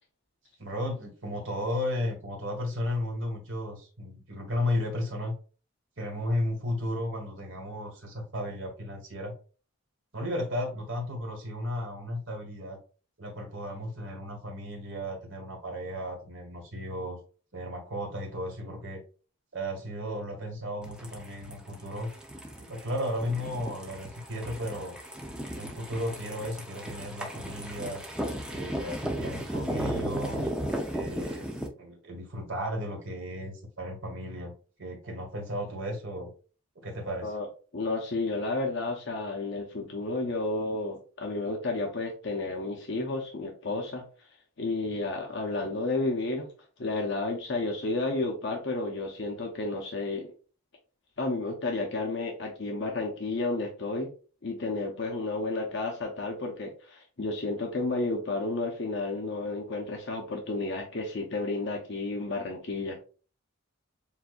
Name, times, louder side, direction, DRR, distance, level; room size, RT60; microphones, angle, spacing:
voice 1, 0.6-5.3 6.0-9.3 10.1-12.8 13.2-17.2 17.5-19.0 19.5-22.1 22.6-24.9 25.6-28.0 28.5-30.5 30.9-31.5 31.8-34.5 34.8-36.3 36.8-37.3, left 1 dB, 60° right, 1 dB, 1.7 m, -34 dB
sound 1, 20.8-31.7, right 1 dB, 5° right, 0.6 m, -35 dB
voice 2, 37.7-44.3 44.6-46.5 46.8-50.3 51.2-54.1 54.4-63.0, left 2 dB, 55° left, 1 dB, 0.8 m, -31 dB
7.2 x 2.6 x 2.4 m, 0.37 s
head